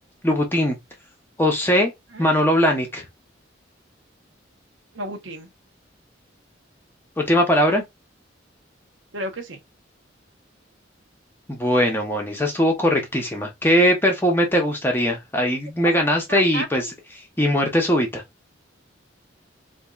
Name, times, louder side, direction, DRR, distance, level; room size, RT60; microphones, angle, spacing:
voice 1, 0.2-0.8 1.4-1.9 2.2-3.0 7.2-7.8 11.5-16.9 17.4-18.2, equal, 10° left, 0.7 m, -20 dB
voice 2, 4.9-5.5 9.1-9.6 15.8-15.9 16.3-16.7, right 2 dB, 80° right, 0.9 m, -32 dB
4.1 x 2.6 x 2.3 m
head